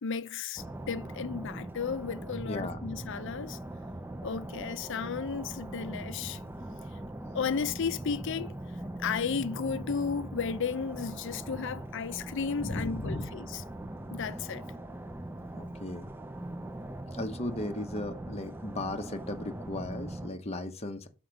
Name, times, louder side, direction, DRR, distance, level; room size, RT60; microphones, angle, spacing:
voice 1, 0.0-3.6 4.2-6.4 7.3-8.6 9.0-13.6 14.1-14.6, left 6 dB, 55° left, 0.5 m, -34 dB
sound 1, 0.6-20.3, right 1 dB, 10° right, 0.4 m, -41 dB
voice 2, 2.4-2.8 12.6-13.3 15.5-16.1 17.1-21.1, left 1 dB, 30° left, 0.8 m, -36 dB
6.4 x 4.3 x 5.1 m
head